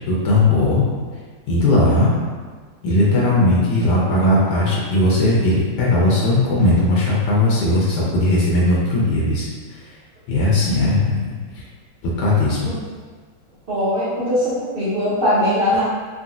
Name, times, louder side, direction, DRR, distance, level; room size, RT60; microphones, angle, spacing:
voice 1, 0.1-0.8 1.5-2.1 2.8-9.8 10.3-11.6 12.0-12.7, left 2 dB, 80° left, -5 dB, 1.2 m, -18 dB
voice 2, 13.7-15.8, left 1 dB, 60° right, -10 dB, 0.5 m, -20 dB
3.7 x 2.1 x 2.5 m, 1.5 s
omnidirectional pair, 1.9 m